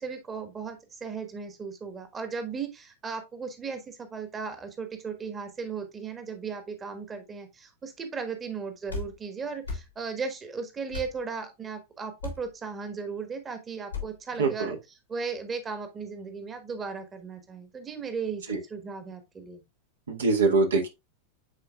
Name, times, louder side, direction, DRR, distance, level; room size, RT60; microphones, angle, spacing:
voice 1, 0.0-14.8 15.1-19.6, right 5 dB, 20° right, 1.4 m, -36 dB
sound 1, 8.9-9.1 9.6-9.9 10.9-11.1 12.2-12.5 13.9-14.1, left 4 dB, 80° left, 2.4 m, -35 dB
voice 2, 14.4-14.7 18.5-18.6 20.1-20.9, right 3 dB, 70° right, 1.6 m, -23 dB
9.4 x 4.4 x 2.4 m
figure-of-eight pair, 90°, 0 cm